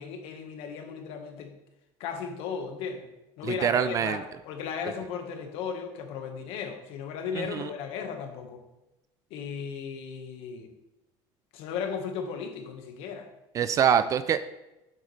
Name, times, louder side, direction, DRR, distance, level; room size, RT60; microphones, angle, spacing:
voice 1, 0.0-1.5 2.0-3.1 3.4-8.6 9.3-10.7 11.5-13.3, left 6 dB, 60° left, 4 dB, 1.5 m, -36 dB
voice 2, 3.4-4.2 7.4-7.7 13.5-14.4, right 8 dB, 30° right, 13 dB, 0.4 m, -25 dB
8.8 x 8.1 x 3.3 m, 0.96 s
cardioid pair, 160°, 11 cm